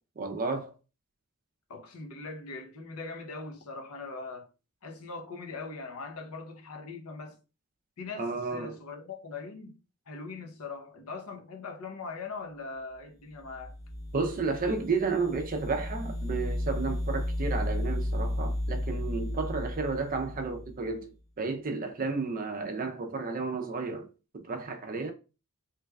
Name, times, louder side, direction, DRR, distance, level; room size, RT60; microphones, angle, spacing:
voice 1, 0.2-0.7 8.2-8.8 14.1-21.1 21.4-24.1 24.3-25.1, right 4 dB, 40° right, 0.5 m, -32 dB
voice 2, 1.7-4.5 4.8-7.4 8.0-9.8 10.1-13.7, left 4 dB, 75° left, 0.7 m, -41 dB
sound 1, 13.4-20.9, left 1 dB, 30° left, 0.7 m, -33 dB
3.2 x 2.2 x 3.3 m
head